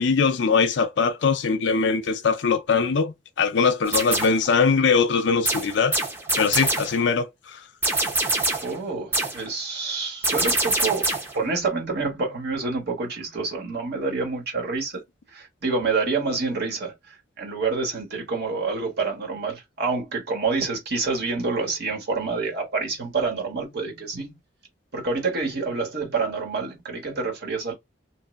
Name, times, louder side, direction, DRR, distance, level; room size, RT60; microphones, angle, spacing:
voice 1, 0.0-6.0 6.4-7.6, left 5 dB, 65° left, 0.5 m, -21 dB
sound 1, 3.9-4.5 5.4-7.0 7.8-8.8 9.1-9.5 10.2-11.4, right 2 dB, 10° right, 0.8 m, -25 dB
voice 2, 8.6-15.0 15.3-24.4 24.9-27.7, right 4 dB, 60° right, 1.4 m, -27 dB
3.1 x 2.5 x 2.5 m
head